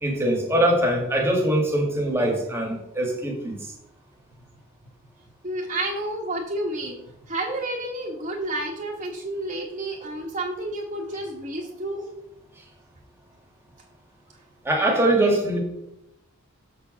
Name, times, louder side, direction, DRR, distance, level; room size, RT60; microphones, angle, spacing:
voice 1, 0.0-3.7 14.6-15.6, right 1 dB, 10° right, 0 dB, 1.7 m, -22 dB
voice 2, 5.4-7.0 7.3-12.1, right 1 dB, 30° right, -4 dB, 1.3 m, -30 dB
6.9 x 4.6 x 6.2 m, 0.83 s
head